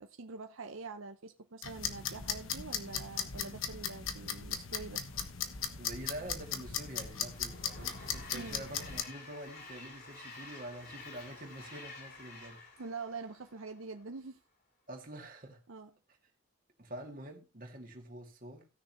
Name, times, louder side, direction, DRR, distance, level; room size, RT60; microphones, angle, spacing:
voice 1, 0.0-5.1 8.3-8.6 12.8-14.4 15.7-15.9, right 4 dB, 80° right, 0.7 m, -45 dB
sound 1, 1.6-9.0, left 7 dB, 80° left, 1.3 m, -38 dB
voice 2, 5.8-12.6 14.9-15.6 16.8-18.7, right 1 dB, 40° right, 2.4 m, -46 dB
Train, 6.6-14.0, left 3 dB, 50° left, 3.1 m, -51 dB
17.5 x 6.5 x 3.1 m
head